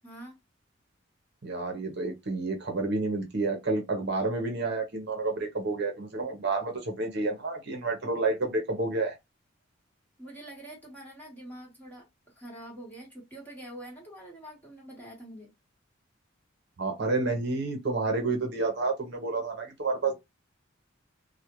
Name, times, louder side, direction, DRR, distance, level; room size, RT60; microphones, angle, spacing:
voice 1, 0.0-0.4 10.2-12.1 12.4-15.5, right 1 dB, 10° left, 1.1 m, -45 dB
voice 2, 1.4-9.2 16.8-20.1, right 3 dB, 55° right, 0.7 m, -29 dB
2.3 x 2.1 x 2.9 m
head